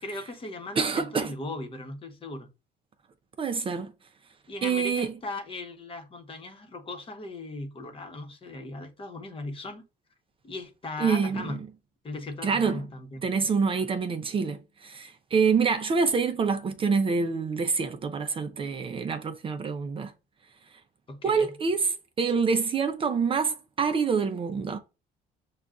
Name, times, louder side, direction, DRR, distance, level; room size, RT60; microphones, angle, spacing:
voice 1, 0.0-2.5 4.5-9.8 10.4-11.6 12.0-13.2 21.1-21.5, left 2 dB, 30° left, 1.0 m, -38 dB
voice 2, 0.8-1.3 3.4-3.9 4.6-5.1 11.0-11.6 12.4-12.8 13.2-20.1 21.2-24.8, right 5 dB, 30° right, 0.5 m, -26 dB
6.4 x 2.3 x 2.4 m
cardioid pair, 110°, 17 cm